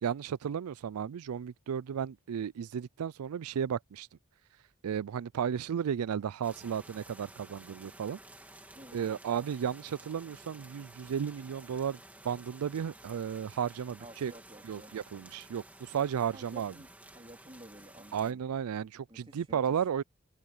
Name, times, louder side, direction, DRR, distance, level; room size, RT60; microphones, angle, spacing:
voice 1, 0.0-4.1 4.8-8.2 8.9-12.0 12.2-14.3 14.6-16.7 18.1-20.0, right 8 dB, 90° right, 0.4 m, -34 dB
sound 1, 6.4-18.3, right 1 dB, 5° right, 2.5 m, -53 dB
voice 2, 8.7-9.2 14.0-15.0 16.3-16.9 17.1-18.4 19.1-19.8, right 1 dB, 25° right, 3.0 m, -52 dB
head